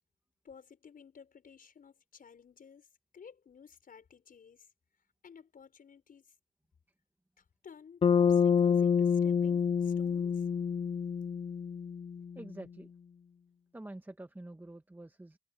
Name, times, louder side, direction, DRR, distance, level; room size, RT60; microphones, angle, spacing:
voice 1, 0.4-2.9 3.1-4.7 5.2-6.3 7.4-10.5, left 6 dB, 45° left, 5.8 m, -54 dB
Bass guitar, 8.0-12.4, left 7 dB, 30° left, 0.5 m, -27 dB
voice 2, 12.3-12.9 13.7-15.4, right 1 dB, 10° right, 1.6 m, -47 dB
cardioid pair, 90°, 20 cm